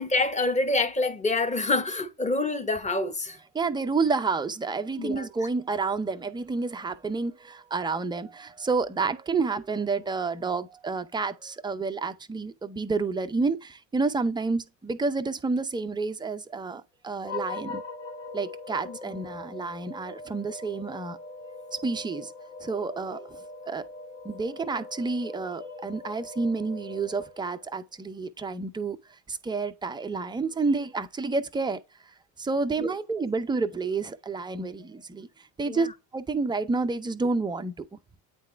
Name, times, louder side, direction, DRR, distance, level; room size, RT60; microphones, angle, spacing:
voice 1, 0.0-3.4 5.0-5.5 18.8-19.3 32.8-32.9 35.7-35.9, left 2 dB, 15° left, 1.0 m, -27 dB
voice 2, 3.5-17.8 18.3-21.2 21.8-22.3 22.6-23.4 23.6-23.9 24.2-29.0 29.3-31.8 32.4-35.3 35.6-35.9 36.1-38.0, right 4 dB, 10° right, 0.5 m, -29 dB
sound 1, 17.2-27.8, left 3 dB, 85° left, 1.4 m, -41 dB
9.0 x 3.7 x 3.3 m
hypercardioid pair, 80°, 49 cm